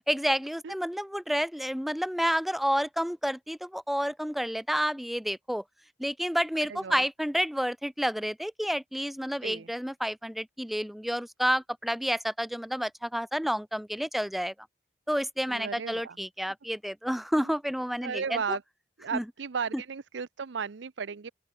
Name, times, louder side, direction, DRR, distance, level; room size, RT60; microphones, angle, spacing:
voice 1, 0.1-5.6 6.0-14.5 15.1-18.6 19.1-19.2, equal, ahead, 0.3 m, -30 dB
voice 2, 6.7-7.0 9.4-9.7 15.5-16.2 17.3-17.4 18.0-18.6 19.0-21.3, right 6 dB, 90° right, 0.6 m, -35 dB
open air
head